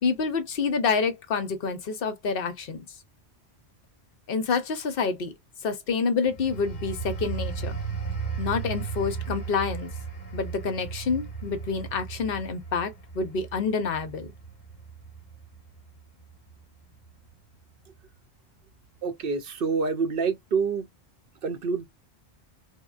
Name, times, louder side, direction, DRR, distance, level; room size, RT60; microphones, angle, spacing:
voice 1, 0.0-2.8 4.3-5.3 5.6-7.8 8.4-9.9 10.3-14.3, left 5 dB, 60° left, 0.9 m, -28 dB
sound 1, 6.3-16.6 17.0-17.3, right 6 dB, 45° left, 1.1 m, -36 dB
voice 2, 19.0-20.8 21.4-21.9, right 5 dB, 65° right, 0.7 m, -27 dB
3.6 x 2.1 x 2.3 m
omnidirectional pair, 1.1 m